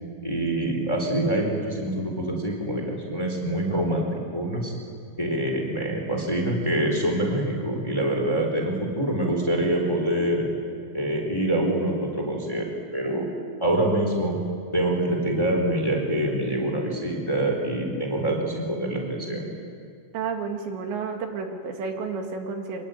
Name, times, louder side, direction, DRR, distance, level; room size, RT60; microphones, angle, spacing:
voice 1, 0.2-4.7 5.2-10.4 10.9-13.3 13.6-14.4 14.7-19.5, right 1 dB, 5° left, 1 dB, 3.4 m, -25 dB
voice 2, 20.1-22.9, right 5 dB, 75° right, 4 dB, 4.2 m, -31 dB
25.0 x 22.0 x 9.2 m, 2.2 s
omnidirectional pair, 5.2 m